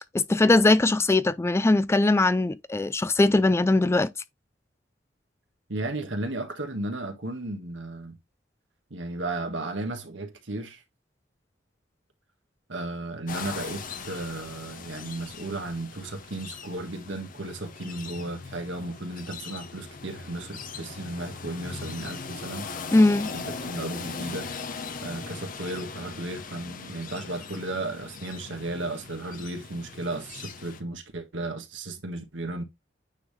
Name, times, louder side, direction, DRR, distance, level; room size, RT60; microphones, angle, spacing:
voice 1, 0.1-4.1 22.9-23.3, left 2 dB, 15° left, 0.3 m, -20 dB
voice 2, 5.7-8.2 8.9-10.8 12.7-22.7 23.3-24.5 25.0-32.6, right 2 dB, 80° right, 1.5 m, -34 dB
sound 1, 13.3-30.8, left 4 dB, 45° left, 0.9 m, -39 dB
9.1 x 3.5 x 3.3 m
head